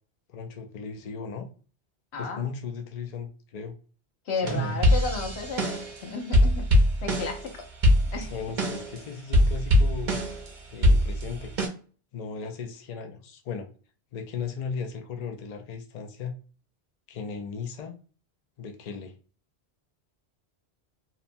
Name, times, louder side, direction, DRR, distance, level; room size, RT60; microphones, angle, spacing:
voice 1, 0.3-1.5 2.2-3.7 4.4-4.8 8.3-10.2 10.7-11.5 12.1-13.7 14.1-16.3 17.1-18.0 18.6-19.1, left 5 dB, 55° left, 0.5 m, -36 dB
voice 2, 2.1-2.4 4.3-6.6 7.0-7.6 8.1-8.4, left 4 dB, 80° left, 1.0 m, -33 dB
sound 1, 4.4-6.0 6.3-7.5 7.8-9.0 9.3-10.5 10.8-11.7, left 1 dB, 50° right, 0.8 m, -22 dB
2.8 x 2.1 x 2.5 m
omnidirectional pair, 1.1 m